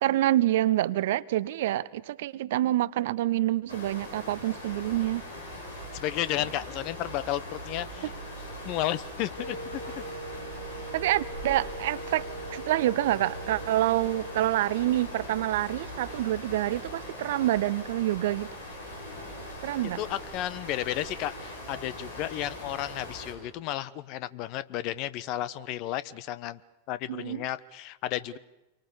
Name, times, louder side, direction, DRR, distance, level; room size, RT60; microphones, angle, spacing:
voice 1, 0.0-5.2 10.9-18.6 19.6-20.0 27.1-27.4, right 14 dB, 55° right, 0.8 m, -27 dB
sound 1, 3.7-23.3, left 1 dB, 85° left, 7.5 m, -41 dB
voice 2, 5.9-8.1 8.6-10.0 20.0-26.6 26.9-28.4, left 13 dB, 40° left, 1.0 m, -33 dB
Wind instrument woodwind instrument, 9.4-15.0, right 2 dB, 85° right, 2.8 m, -42 dB
28.5 x 23.5 x 7.2 m
figure-of-eight pair, 90°, 0 cm